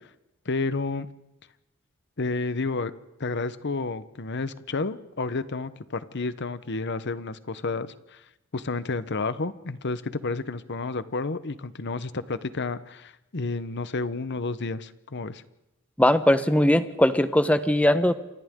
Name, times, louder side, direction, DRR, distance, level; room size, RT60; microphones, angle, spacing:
voice 1, 0.4-1.1 2.2-2.9 3.2-8.2 8.5-15.4, left 3 dB, 55° left, 14 dB, 1.0 m, -30 dB
voice 2, 16.0-18.1, left 1 dB, 5° left, 11 dB, 1.0 m, -20 dB
28.5 x 25.0 x 3.8 m, 0.92 s
head